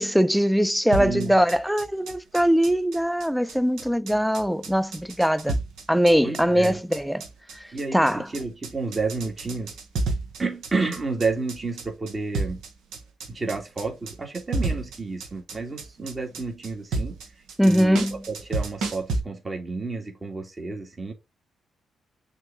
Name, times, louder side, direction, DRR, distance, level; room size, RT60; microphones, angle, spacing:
voice 1, 0.0-5.6 5.9-7.3 7.5-8.3 17.6-18.2, equal, ahead, 0.5 m, -22 dB
sound 1, 0.9-19.2, right 3 dB, 75° right, 1.5 m, -31 dB
voice 2, 1.0-1.4 6.2-6.8 7.7-9.8 10.4-12.6 13.3-17.2 17.6-21.1, right 3 dB, 35° right, 2.6 m, -30 dB
6.3 x 3.7 x 4.4 m
hypercardioid pair, 45°, 0 cm